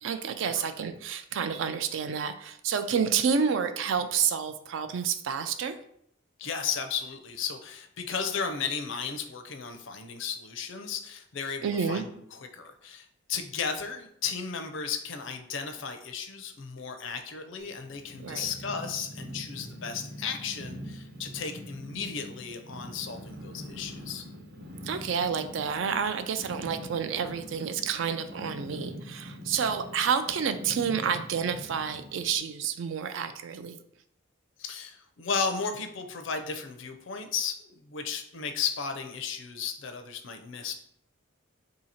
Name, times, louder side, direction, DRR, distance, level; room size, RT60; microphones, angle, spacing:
voice 1, 0.0-5.8 11.6-12.0 18.2-18.5 24.8-33.8, right 7 dB, 60° right, 9 dB, 0.3 m, -29 dB
voice 2, 6.4-24.2 34.6-40.7, left 6 dB, 60° left, 6 dB, 0.5 m, -34 dB
Purr, 17.6-32.4, equal, 45° right, 1.0 m, -43 dB
2.8 x 2.8 x 4.1 m, 0.69 s
head